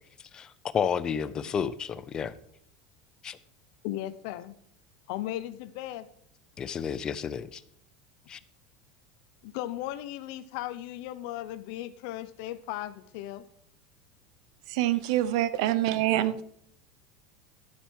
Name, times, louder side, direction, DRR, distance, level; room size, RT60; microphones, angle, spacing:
voice 1, 0.7-2.3 3.2-3.4 6.6-7.6 8.3-8.4, left 7 dB, 25° left, 15 dB, 0.5 m, -31 dB
voice 2, 3.8-4.5 5.1-6.1 9.4-13.4, left 14 dB, 65° left, 14 dB, 0.6 m, -36 dB
voice 3, 14.7-16.4, right 14 dB, 75° right, 16 dB, 0.8 m, -26 dB
12.5 x 6.8 x 4.7 m, 0.67 s
cardioid pair, 160°, 3 cm